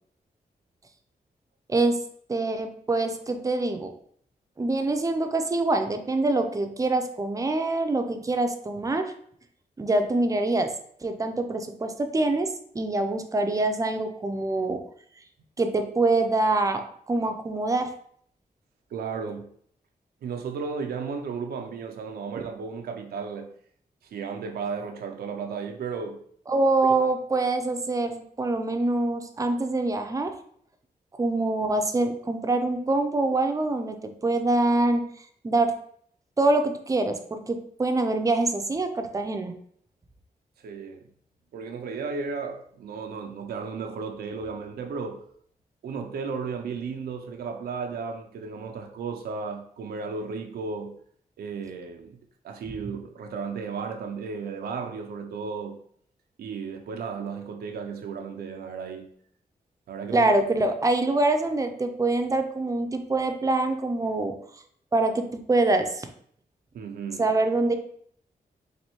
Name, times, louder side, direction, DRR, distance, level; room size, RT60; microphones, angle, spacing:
voice 1, 2.3-3.9 4.6-9.1 9.8-10.7 11.0-14.8 15.6-17.9 26.5-30.3 31.2-35.1 35.4-35.7 36.4-39.5 60.1-64.4 64.9-66.1 67.2-67.7, right 2 dB, 20° right, 6 dB, 0.4 m, -25 dB
voice 2, 18.9-19.5 20.2-23.5 24.1-26.2 26.8-26.9 40.6-41.0 41.5-45.2 45.8-51.0 51.4-52.2 52.4-55.8 56.4-59.1 59.9-60.3 66.7-67.3, right 5 dB, 90° right, 4 dB, 0.4 m, -34 dB
4.3 x 2.6 x 2.9 m, 0.63 s
cardioid pair, 85°, 16 cm